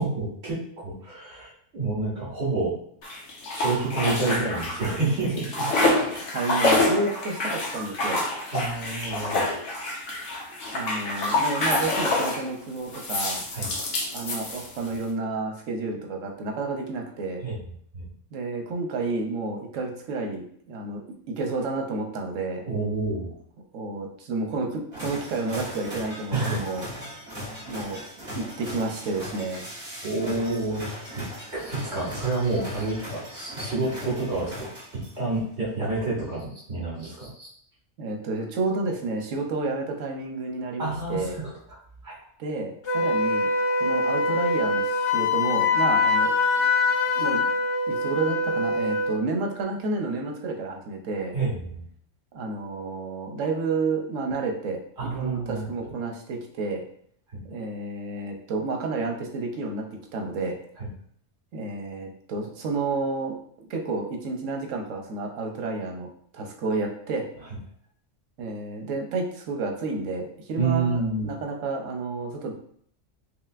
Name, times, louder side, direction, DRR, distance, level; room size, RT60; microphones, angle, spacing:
voice 1, 0.0-2.7 3.5-5.7 6.0-6.2 8.5-9.5 13.5-13.8 17.4-17.6 17.9-18.0 22.7-23.3 26.3-26.6 30.0-31.3 31.5-34.5 34.9-37.5 40.8-41.4 41.7-41.8 42.0-42.2 51.3-51.8 55.0-55.7 57.3-57.4 60.8-60.9 70.6-71.3, right 3 dB, 60° right, -7 dB, 2.2 m, -28 dB
sound 1, 3.0-5.0 5.2-12.5 12.9-15.0, left 2 dB, 75° left, 1.2 m, -27 dB
voice 2, 6.2-8.2 10.7-13.5 14.1-17.4 18.3-22.6 23.7-26.9 27.7-29.7 38.0-41.4 42.4-43.5 43.8-46.3 46.6-46.7 47.1-47.5 47.9-51.4 52.3-54.8 55.1-56.8 57.4-59.9 60.1-60.6 61.5-63.4 63.7-67.3 68.4-72.5, right 3 dB, 85° right, 2 dB, 1.1 m, -30 dB
sound 2, 24.9-35.3, equal, 35° right, 1.5 m, -39 dB
Wind instrument woodwind instrument, 42.9-49.2, left 3 dB, 60° left, 0.7 m, -23 dB
4.8 x 2.9 x 2.4 m, 0.62 s
omnidirectional pair, 1.3 m